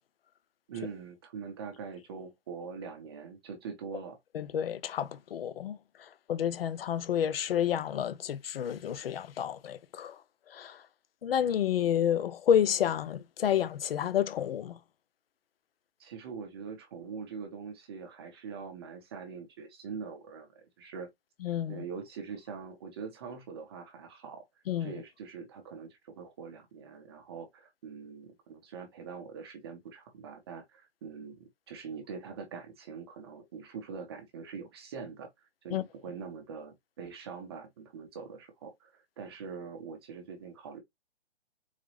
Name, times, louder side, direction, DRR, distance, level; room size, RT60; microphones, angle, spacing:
voice 1, 0.7-4.2 16.0-21.1 21.7-24.4 24.8-40.8, right 5 dB, 25° right, 0.7 m, -43 dB
voice 2, 4.3-5.8 6.3-10.2 10.5-10.8 11.2-14.8 21.4-21.8 24.7-24.9 35.7-35.8, left 9 dB, 60° left, 0.5 m, -29 dB
4.0 x 2.1 x 3.1 m
hypercardioid pair, 155°, 33 cm